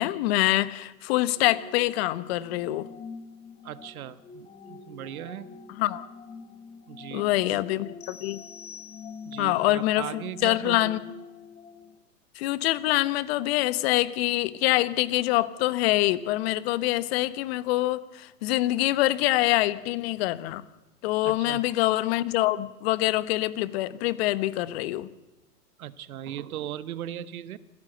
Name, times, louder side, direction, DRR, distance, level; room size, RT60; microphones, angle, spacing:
voice 1, 0.0-2.9 5.8-6.0 7.1-8.4 9.4-11.1 12.4-20.6 21.0-25.1, left 17 dB, 40° left, 16 dB, 1.2 m, -25 dB
sound 1, 1.3-12.0, left 6 dB, 15° left, 1.5 m, -45 dB
voice 2, 3.6-5.5 6.9-7.6 9.2-11.0 21.2-21.6 25.8-27.6, right 11 dB, 60° right, 15 dB, 1.5 m, -38 dB
sound 2, 8.0-9.5, left 7 dB, 85° left, 2.7 m, -47 dB
27.0 x 16.5 x 7.9 m, 1.0 s
hypercardioid pair, 135°, 48 cm